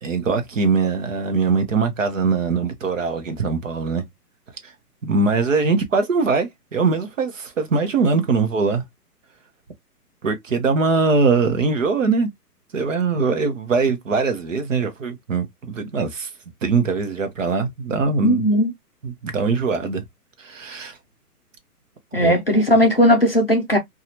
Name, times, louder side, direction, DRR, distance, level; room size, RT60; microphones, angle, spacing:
voice 1, 0.0-4.0 4.6-4.7 5.0-8.8 10.2-12.3 12.7-16.3 16.6-18.4 19.0-20.0 20.4-21.0 22.2-22.6, right 4 dB, 55° right, 0.8 m, -22 dB
voice 2, 18.2-18.7 22.1-23.8, equal, 40° left, 0.4 m, -17 dB
2.6 x 2.3 x 2.9 m
hypercardioid pair, 170°, 47 cm